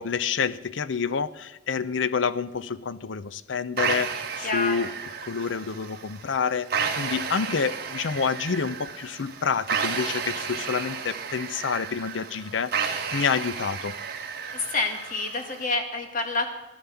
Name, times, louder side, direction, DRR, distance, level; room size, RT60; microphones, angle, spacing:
voice 1, 0.0-4.9 5.2-13.9, left 6 dB, 75° left, 16 dB, 0.6 m, -28 dB
sound 1, 3.8-15.8, right 6 dB, 55° right, 1.6 m, -32 dB
voice 2, 4.4-4.9 14.5-16.5, left 3 dB, 45° left, 5 dB, 2.1 m, -28 dB
14.5 x 11.5 x 7.0 m, 1.1 s
head